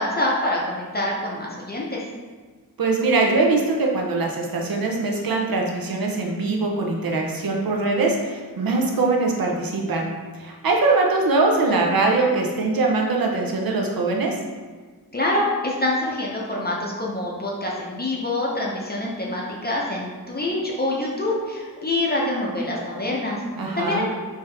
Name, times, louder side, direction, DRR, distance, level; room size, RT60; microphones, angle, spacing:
voice 1, 0.0-2.0 15.1-23.4 23.7-24.1, left 1 dB, 25° left, -3 dB, 0.6 m, -25 dB
voice 2, 2.8-10.1 10.4-14.3 23.6-24.0, right 3 dB, 65° right, 0 dB, 0.7 m, -22 dB
3.5 x 2.8 x 3.3 m, 1.4 s
wide cardioid pair, 100°, 39 cm